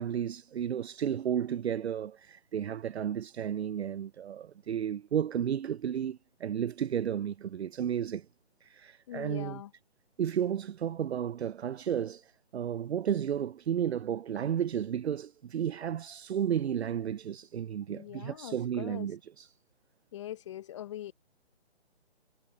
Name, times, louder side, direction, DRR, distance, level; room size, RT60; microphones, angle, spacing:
voice 1, 0.0-8.3 8.6-9.6 10.2-19.5, right 9 dB, 75° right, 0.5 m, -33 dB
voice 2, 9.1-9.7 17.9-19.2 20.1-21.1, left 12 dB, 30° left, 0.9 m, -42 dB
figure-of-eight pair, 145°, 33 cm